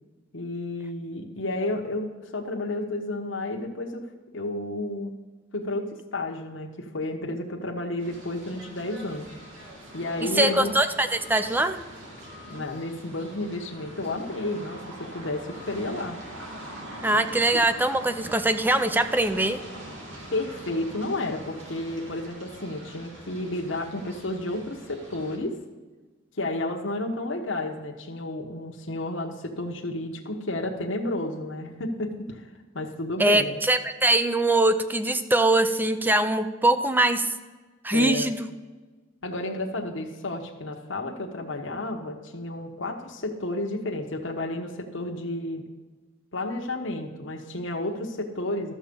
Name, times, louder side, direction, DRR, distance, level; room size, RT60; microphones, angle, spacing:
voice 1, 0.3-4.0 4.3-5.2 5.5-9.3 9.9-10.7 12.5-16.2 17.1-17.3 20.3-25.6 26.4-32.5 32.7-33.5 37.9-38.3 39.2-45.6 46.3-48.7, left 2 dB, 75° left, 1 dB, 1.2 m, -31 dB
sound 1, 8.0-25.4, right 1 dB, 90° right, 2.6 m, -43 dB
voice 2, 10.2-11.8 17.0-19.6 33.2-37.3 37.8-38.5, right 2 dB, 10° right, 10 dB, 0.5 m, -22 dB
12.0 x 7.4 x 5.3 m, 1.3 s
head